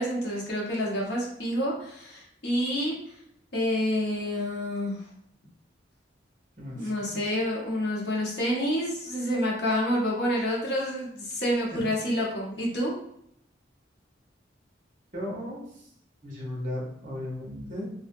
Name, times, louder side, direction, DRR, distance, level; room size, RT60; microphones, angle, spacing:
voice 1, 0.0-2.9 3.5-5.0 6.7-12.9, equal, 60° left, -4 dB, 0.8 m, -28 dB
voice 2, 6.6-7.2 11.7-11.8 15.1-15.7 16.2-17.9, left 1 dB, 40° right, -5 dB, 0.9 m, -36 dB
2.5 x 2.1 x 2.6 m, 0.72 s
head